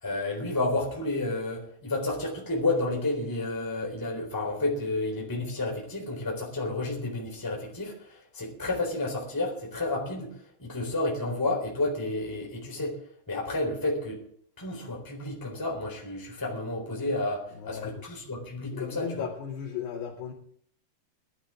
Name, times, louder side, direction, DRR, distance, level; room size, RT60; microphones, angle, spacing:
voice 1, 0.0-10.3 10.6-13.0 13.3-14.2 14.6-19.2, left 2 dB, 5° left, -1 dB, 3.2 m, -31 dB
voice 2, 17.5-18.0 18.7-20.3, left 8 dB, 70° left, -6 dB, 4.4 m, -36 dB
20.0 x 13.0 x 3.7 m, 0.63 s
omnidirectional pair, 5.0 m